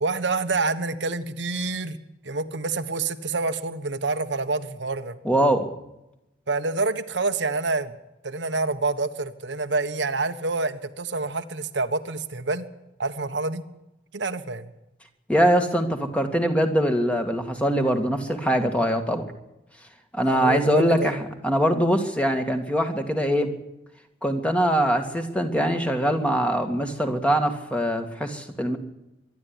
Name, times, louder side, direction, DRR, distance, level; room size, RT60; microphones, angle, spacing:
voice 1, 0.0-2.0 2.2-5.2 6.5-7.9 8.2-12.7 13.0-13.6 14.1-14.7 20.3-21.1, right 3 dB, 90° right, 8 dB, 1.4 m, -27 dB
voice 2, 5.2-5.7 15.3-19.3 20.1-23.5 24.2-28.8, equal, 5° left, 5 dB, 2.2 m, -23 dB
24.0 x 12.0 x 9.9 m, 0.92 s
head